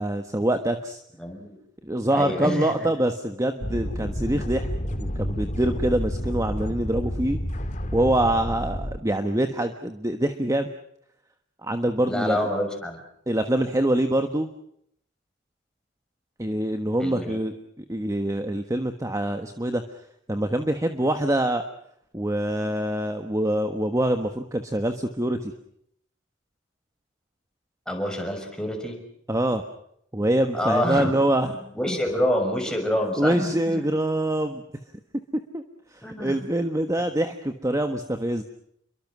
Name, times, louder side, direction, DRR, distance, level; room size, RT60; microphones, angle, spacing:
voice 1, 0.0-1.0 1.8-4.7 5.0-7.4 7.9-10.7 11.6-12.4 13.3-14.5 16.4-19.8 20.3-21.6 22.1-25.5 29.3-29.6 30.1-31.5 31.9-32.0 33.2-34.6 35.5-35.6 35.9-38.4, right 1 dB, 15° right, 7 dB, 1.3 m, -25 dB
voice 2, 1.2-1.6 2.1-2.9 12.1-13.0 17.0-17.4 27.9-29.0 30.5-31.1 31.5-33.6 36.0-36.4, equal, 5° left, 2 dB, 6.1 m, -27 dB
sound 1, 3.6-9.0, equal, 40° left, 2.2 m, -30 dB
29.0 x 23.5 x 6.2 m, 0.71 s
head